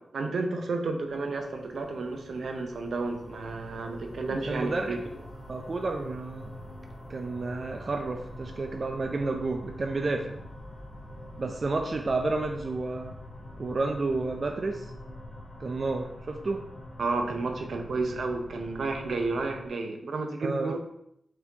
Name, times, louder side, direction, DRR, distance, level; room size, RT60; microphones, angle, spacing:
voice 1, 0.1-5.0 17.0-20.8, right 3 dB, 80° right, 4 dB, 0.6 m, -31 dB
sound 1, 1.1-19.7, left 1 dB, 30° left, 1.2 m, -45 dB
voice 2, 4.3-6.5 7.1-10.4 11.4-13.2 13.6-14.9 15.6-16.6 20.4-20.7, right 3 dB, 40° right, 3 dB, 0.3 m, -31 dB
4.3 x 4.2 x 2.7 m, 0.77 s
wide cardioid pair, 155°, 0 cm